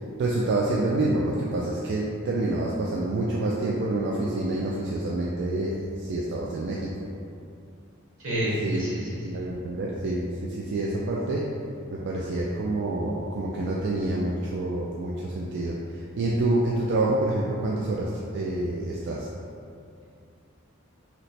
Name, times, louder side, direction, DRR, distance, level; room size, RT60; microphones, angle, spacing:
voice 1, 0.2-6.9 8.6-8.9 9.2-11.5 11.9-19.3, right 2 dB, 55° right, -4 dB, 0.3 m, -27 dB
voice 2, 8.2-9.1 9.3-9.4, right 1 dB, 80° right, -9 dB, 1.3 m, -28 dB
3.1 x 2.0 x 4.1 m, 2.5 s
head